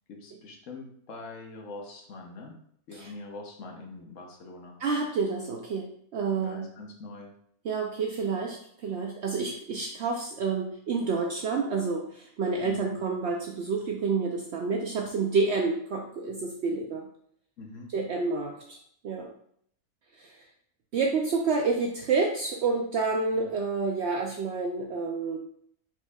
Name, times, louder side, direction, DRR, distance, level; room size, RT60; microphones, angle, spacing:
voice 1, 0.1-2.5 2.9-4.8 6.4-7.3 12.6-13.0 17.6-17.9 23.3-23.5, left 2 dB, 65° left, 1 dB, 1.1 m, -43 dB
voice 2, 4.8-5.9 6.1-6.7 7.6-17.1 17.9-18.8 19.0-19.3 20.2-20.4 20.9-25.4, right 4 dB, 65° right, 1 dB, 0.6 m, -29 dB
4.4 x 4.4 x 2.3 m, 0.67 s
omnidirectional pair, 1.5 m